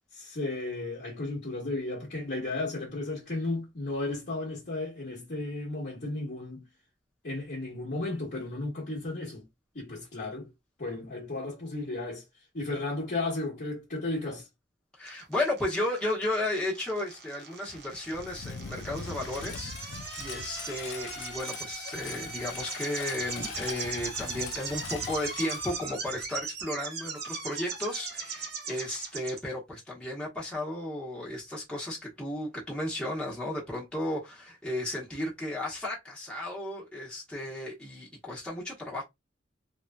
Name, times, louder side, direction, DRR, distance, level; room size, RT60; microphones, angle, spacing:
voice 1, 0.1-6.6 7.2-9.4 9.7-10.5 10.8-12.2 12.5-14.5, left 2 dB, 50° left, 1.1 m, -34 dB
voice 2, 15.0-39.0, left 1 dB, 5° left, 1.0 m, -34 dB
sound 1, 15.1-29.4, right 4 dB, 60° right, 1.0 m, -39 dB
Engine, 17.7-26.4, left 6 dB, 90° left, 0.4 m, -42 dB
3.1 x 2.6 x 2.2 m
head